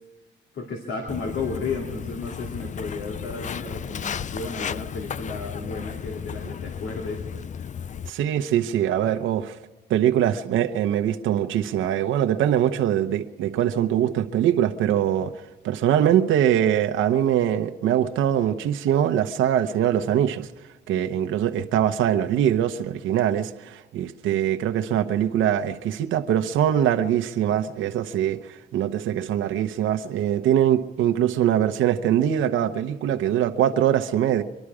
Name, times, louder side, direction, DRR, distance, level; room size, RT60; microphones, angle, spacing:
voice 1, 0.5-7.2, left 4 dB, 70° left, 2.7 m, -33 dB
Walk footsteps, 1.1-8.1, left 7 dB, 40° left, 0.5 m, -34 dB
voice 2, 8.1-9.6 9.9-15.3 15.6-20.5 20.9-34.4, right 10 dB, 85° right, 0.9 m, -22 dB
25.0 x 12.0 x 4.9 m
cardioid pair, 90°, 20 cm